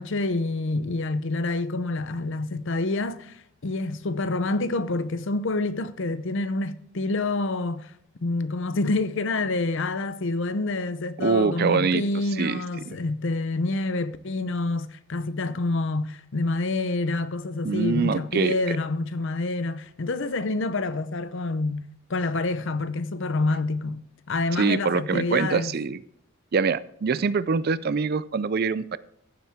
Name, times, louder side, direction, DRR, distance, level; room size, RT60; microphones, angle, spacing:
voice 1, 0.0-7.9 8.2-25.7, left 2 dB, 55° left, 0.6 m, -27 dB
voice 2, 11.2-12.0 12.4-13.0 17.6-18.5 24.6-26.0 26.5-29.0, right 5 dB, 45° right, 0.4 m, -24 dB
15.0 x 7.2 x 3.5 m
head